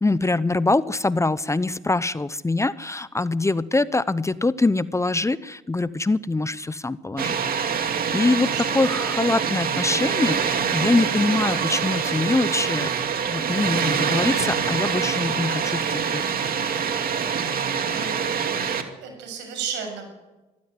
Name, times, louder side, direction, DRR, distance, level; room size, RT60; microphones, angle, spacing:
voice 1, 0.0-7.4 8.1-12.9 13.3-16.2, left 2 dB, 15° left, 17 dB, 0.8 m, -24 dB
Water, 7.2-18.8, right 7 dB, 55° right, 2.6 m, -25 dB
voice 2, 8.3-8.6 17.4-18.4 19.0-20.1, right 6 dB, 80° right, 5 dB, 7.0 m, -34 dB
24.5 x 15.0 x 9.7 m, 1.1 s
supercardioid pair, 65°, 18 cm